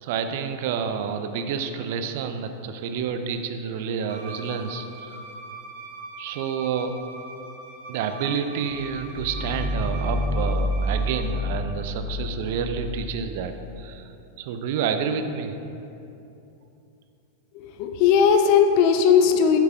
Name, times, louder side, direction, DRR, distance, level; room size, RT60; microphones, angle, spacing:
voice 1, 0.0-5.2 6.2-6.9 7.9-14.1 14.4-15.6, right 6 dB, 55° right, 8 dB, 0.4 m, -29 dB
Bowed string instrument, 4.1-11.4, right 3 dB, 75° right, 1.2 m, -41 dB
sound 1, 8.7-13.4, left 1 dB, 5° left, 1.3 m, -28 dB
voice 2, 17.5-19.6, left 7 dB, 45° left, 6 dB, 0.5 m, -18 dB
8.7 x 7.4 x 2.2 m, 2.8 s
figure-of-eight pair, 90°, 0 cm